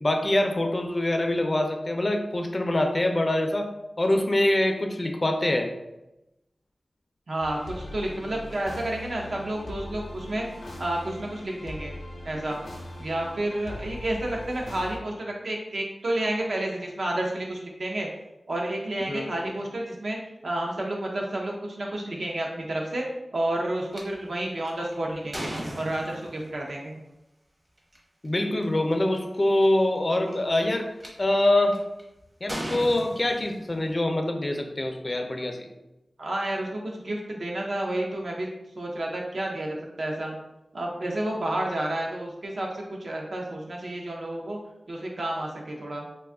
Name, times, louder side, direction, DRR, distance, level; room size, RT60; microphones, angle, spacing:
voice 1, 0.0-3.7 4.0-5.7 19.1-19.3 28.2-30.9 31.2-31.8 32.4-35.7, left 1 dB, 35° left, 4 dB, 0.4 m, -24 dB
voice 2, 7.3-10.5 10.8-12.0 12.2-12.6 13.0-18.1 18.5-23.0 23.3-27.0 36.2-38.5 38.8-40.3 40.7-44.6 44.9-46.1, right 1 dB, 75° right, -1 dB, 0.6 m, -30 dB
sound 1, 7.4-15.0, left 1 dB, 85° left, 0.6 m, -40 dB
sound 2, 23.9-24.0 24.6-26.5 27.8-28.0 28.6-28.7 28.9-29.4 30.1-31.1 31.7-32.0 32.5-33.9, right 1 dB, 35° right, 0.8 m, -36 dB
2.5 x 2.3 x 3.5 m, 0.95 s
wide cardioid pair, 80°, 0 cm